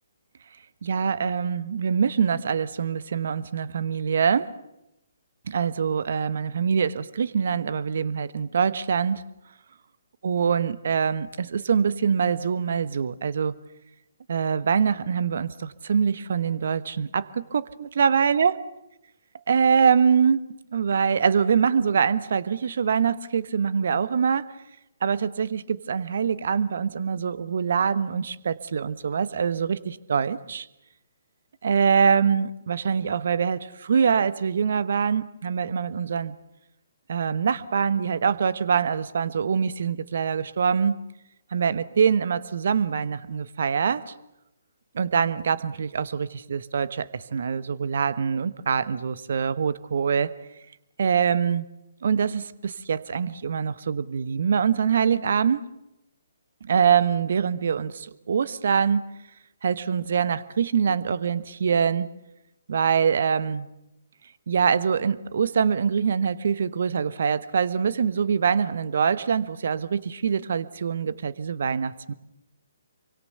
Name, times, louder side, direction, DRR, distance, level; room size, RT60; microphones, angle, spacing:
voice 1, 0.8-4.5 5.5-9.2 10.2-13.5 14.3-18.6 19.5-20.4 20.7-24.5 25.0-30.7 31.6-36.4 37.1-41.0 41.5-44.1 44.9-50.3 51.0-51.7 52.0-55.6 56.6-59.1 59.6-62.1 62.7-63.7 64.5-72.1, right 6 dB, 55° right, 16 dB, 1.2 m, -24 dB
27.0 x 24.0 x 7.0 m, 0.89 s
figure-of-eight pair, 135°, 0 cm